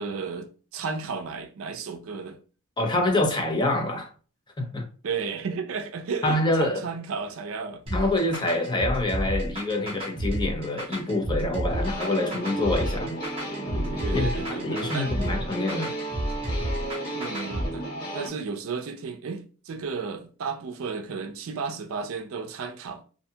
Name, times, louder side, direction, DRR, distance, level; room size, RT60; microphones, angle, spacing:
voice 1, 0.0-2.4 5.0-7.8 14.0-15.1 17.1-17.9 18.1-23.0, right 5 dB, 70° right, 0.4 m, -33 dB
voice 2, 2.8-4.1 4.6-4.9 6.2-6.8 7.9-13.2 13.8-14.3 14.6-15.9, left 2 dB, 20° left, 0.5 m, -26 dB
sound 1, 7.9-17.7, equal, 25° right, 0.8 m, -31 dB
sound 2, 11.7-18.3, right 1 dB, 45° left, 1.2 m, -33 dB
2.6 x 2.3 x 2.7 m
head